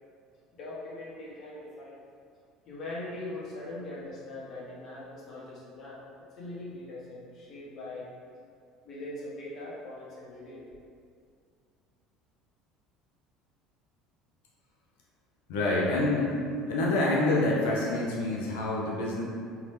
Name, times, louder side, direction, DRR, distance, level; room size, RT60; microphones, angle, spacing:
voice 1, 0.5-2.0 2.7-6.0 6.3-8.1 8.8-10.6, left 2 dB, 50° left, -7 dB, 0.9 m, -41 dB
voice 2, 15.5-16.3 16.7-19.2, left 2 dB, 85° left, -4 dB, 0.5 m, -27 dB
2.8 x 2.0 x 3.2 m, 2.2 s
supercardioid pair, 100°, 0 cm